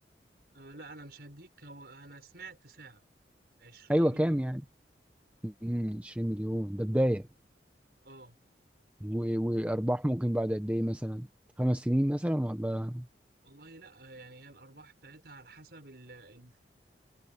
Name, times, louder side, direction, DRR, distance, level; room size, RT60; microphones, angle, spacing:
voice 1, 0.5-3.0 3.6-4.5 8.0-8.4 13.4-16.6, right 2 dB, 60° right, 6.1 m, -50 dB
voice 2, 3.9-4.6 5.4-7.3 9.0-11.3 11.6-13.1, equal, 10° right, 0.8 m, -29 dB
head